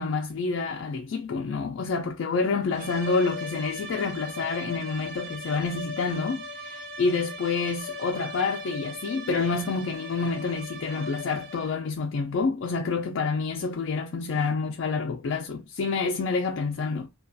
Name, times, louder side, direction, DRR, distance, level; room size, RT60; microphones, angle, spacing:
voice 1, 0.0-17.1, left 4 dB, 65° left, 0.3 m, -28 dB
sound 1, 2.7-11.9, left 1 dB, 45° right, 0.6 m, -38 dB
2.3 x 2.3 x 2.5 m
head